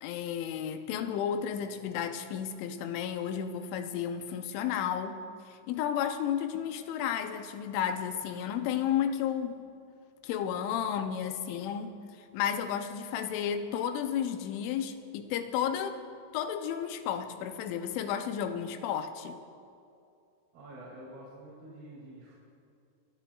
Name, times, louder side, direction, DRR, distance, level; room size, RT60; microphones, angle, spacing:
voice 1, 0.0-5.2 5.5-9.6 10.2-16.0 16.3-19.4, left 9 dB, 85° left, 8 dB, 3.1 m, -32 dB
voice 2, 20.5-22.3, right 1 dB, 60° right, -7 dB, 4.2 m, -48 dB
30.0 x 11.0 x 2.3 m, 2.5 s
omnidirectional pair, 5.4 m